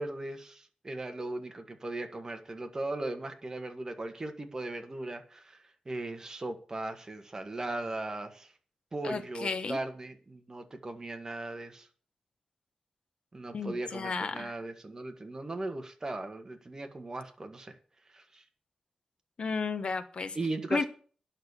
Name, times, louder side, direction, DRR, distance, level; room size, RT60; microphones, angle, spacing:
voice 1, 0.0-8.5 8.9-11.9 13.3-17.7 18.1-18.4 20.3-20.9, right 2 dB, 25° right, 6 dB, 1.6 m, -38 dB
voice 2, 9.0-9.8 13.5-14.5 19.4-20.4 20.7-20.9, left 4 dB, 50° left, 10 dB, 1.1 m, -33 dB
10.0 x 6.5 x 8.2 m, 0.42 s
wide cardioid pair, 125°, 2 cm